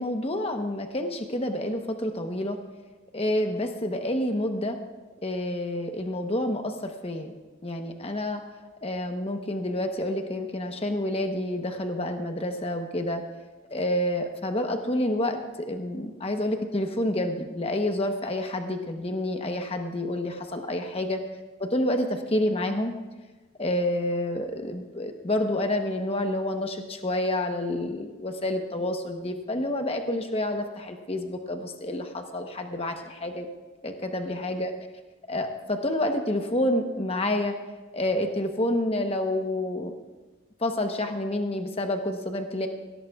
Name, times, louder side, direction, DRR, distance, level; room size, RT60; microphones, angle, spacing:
voice 1, 0.0-2.6 3.1-4.8 5.2-7.3 7.6-8.4 8.8-13.2 13.7-21.2 21.6-22.9 23.6-33.5 33.8-34.7 35.3-37.6 37.9-39.9 40.6-42.7, left 1 dB, 30° left, 5 dB, 1.0 m, -28 dB
21.5 x 16.5 x 2.4 m, 1.3 s
head